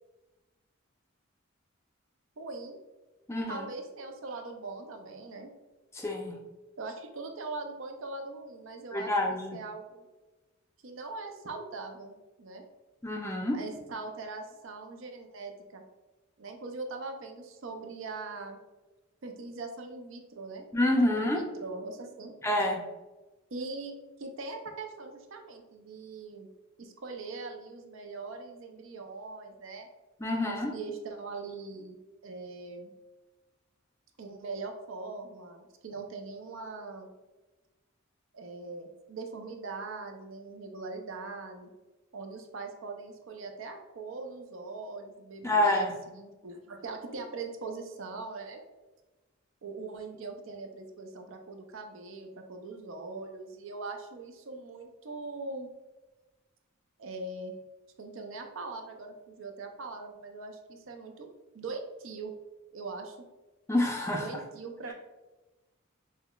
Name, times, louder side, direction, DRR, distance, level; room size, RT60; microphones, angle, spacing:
voice 1, 2.4-2.8 3.5-5.5 6.8-9.1 9.5-10.1 10.8-12.1 12.4-12.6 13.5-15.8 16.4-18.6 19.2-20.7 21.1-22.4 23.5-26.5 26.8-29.9 30.5-32.0 32.2-32.9 34.2-37.1 38.3-41.7 42.1-48.6 49.6-55.7 57.0-57.5 58.0-61.3 61.5-62.3 62.7-63.3 64.1-64.9, right 3 dB, 70° right, 4 dB, 0.5 m, -41 dB
voice 2, 3.3-3.6 5.9-6.3 8.9-9.6 13.0-13.6 20.7-21.4 22.4-22.8 30.2-30.7 45.4-45.9 63.7-64.3, left 1 dB, 15° left, 0 dB, 0.4 m, -27 dB
5.5 x 2.1 x 2.3 m, 1.1 s
head